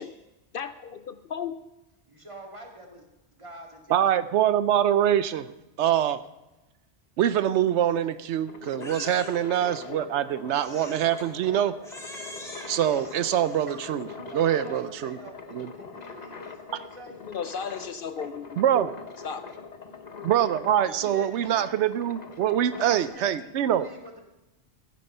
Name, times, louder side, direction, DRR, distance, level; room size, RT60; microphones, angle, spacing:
voice 1, 0.5-1.6 8.7-9.1 9.9-10.0 17.2-18.9 19.2-19.5, left 6 dB, 60° left, 12 dB, 0.7 m, -35 dB
voice 2, 2.1-3.1 3.3-4.0 14.1-17.2 20.9-21.7 22.7-24.2, right 1 dB, 30° right, 1 dB, 2.1 m, -45 dB
voice 3, 3.9-5.5 5.8-6.2 7.2-11.7 12.7-14.1 14.3-15.2 15.5-15.7 18.6-18.9 20.2-23.9, right 10 dB, 80° right, 13 dB, 0.9 m, -24 dB
sound 1, 8.2-23.1, left 5 dB, 40° left, 1.1 m, -43 dB
Crying sobbing, 8.8-9.6 10.5-11.3 11.8-14.0, left 1 dB, 5° left, 2.8 m, -43 dB
15.0 x 9.6 x 5.5 m, 1.0 s
omnidirectional pair, 1.1 m